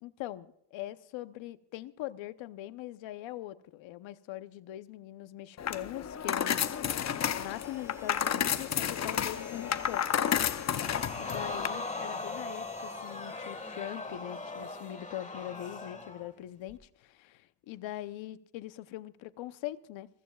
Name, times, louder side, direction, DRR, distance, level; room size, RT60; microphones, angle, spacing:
voice 1, 0.0-10.0 11.1-20.1, left 14 dB, 90° left, 0.9 m, -42 dB
sound 1, 5.6-11.7, left 9 dB, 35° left, 0.7 m, -31 dB
sound 2, 7.1-14.5, equal, 5° right, 1.1 m, -54 dB
Crowd, 10.8-16.3 16.7-16.8, left 3 dB, 15° left, 1.7 m, -39 dB
28.0 x 15.0 x 2.3 m
cardioid pair, 140°, 44 cm